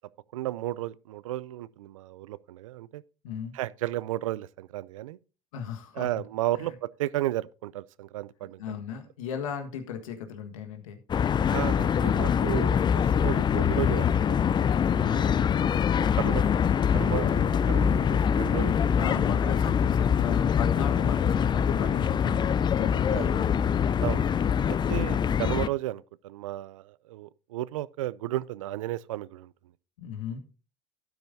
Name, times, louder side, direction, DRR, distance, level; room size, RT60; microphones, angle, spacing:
voice 1, 0.3-3.0 3.5-5.2 5.9-8.8 11.5-14.4 15.1-15.6 16.2-16.4 16.9-18.7 23.1-23.3 24.0-24.2 24.7-29.5, right 15 dB, 85° right, 0.4 m, -33 dB
voice 2, 5.5-6.1 6.6-6.7 8.6-11.0 14.9-15.3 18.9-23.7 30.0-30.4, left 7 dB, 85° left, 1.5 m, -36 dB
sound 1, 11.1-25.7, left 8 dB, 25° left, 0.4 m, -24 dB
12.0 x 9.3 x 2.7 m
hypercardioid pair, 75°, 17 cm